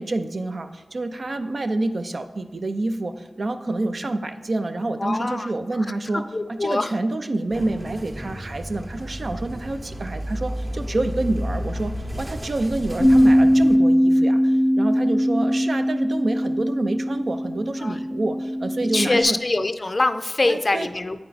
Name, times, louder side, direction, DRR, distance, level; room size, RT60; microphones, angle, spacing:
voice 1, 0.0-19.4 20.4-20.9, right 2 dB, 70° right, 7 dB, 0.5 m, -28 dB
voice 2, 5.0-5.5 6.3-6.9 17.8-18.0 18.9-21.2, left 2 dB, 50° left, 10 dB, 0.4 m, -23 dB
sound 1, 7.5-13.8, equal, 35° right, 0.9 m, -32 dB
Bass guitar, 13.0-19.2, equal, 85° right, 1.7 m, -20 dB
8.5 x 4.4 x 4.0 m, 1.2 s
cardioid pair, 40°, 0 cm